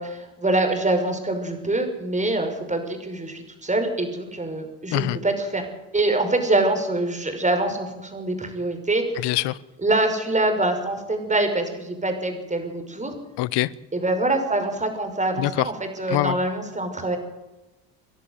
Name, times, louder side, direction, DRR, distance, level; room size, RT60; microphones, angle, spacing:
voice 1, 0.0-5.6 5.9-9.0 9.8-13.1 13.9-17.2, right 2 dB, 15° right, 5.9 m, -24 dB
voice 2, 9.2-9.6 13.4-13.7 15.4-15.7 16.1-16.4, left 17 dB, 60° left, 1.1 m, -23 dB
29.0 x 11.0 x 8.2 m
hypercardioid pair, 70°, 47 cm